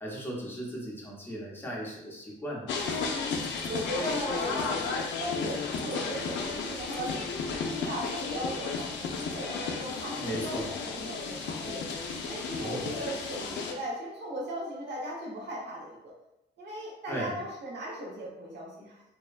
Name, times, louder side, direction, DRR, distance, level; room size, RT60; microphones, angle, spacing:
voice 1, 0.0-2.7 10.2-10.7 12.6-12.8 17.1-17.3, equal, 10° left, -4 dB, 0.7 m, -37 dB
sound 1, 2.7-13.7, left 4 dB, 75° left, 0.4 m, -33 dB
voice 2, 3.6-4.8 5.2-11.8 12.2-16.1 16.6-19.0, equal, 65° right, -5 dB, 0.9 m, -37 dB
2.7 x 2.2 x 2.3 m, 0.88 s
cardioid pair, 105°, 19 cm